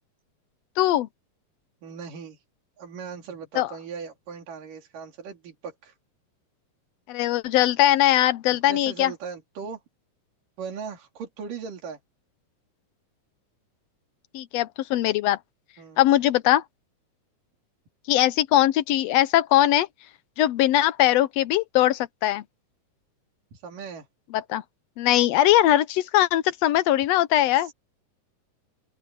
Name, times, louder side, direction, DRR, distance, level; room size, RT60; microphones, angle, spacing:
voice 1, 0.8-1.1 3.5-3.7 7.1-9.1 14.3-15.4 16.0-16.6 18.1-19.9 20.4-22.4 24.3-24.6 25.0-27.7, left 13 dB, 85° left, 1.4 m, -21 dB
voice 2, 1.8-2.4 2.8-5.9 8.5-9.8 10.6-12.0 15.8-16.0 23.5-24.1 27.5-27.7, right 6 dB, 80° right, 4.6 m, -38 dB
open air
omnidirectional pair, 3.7 m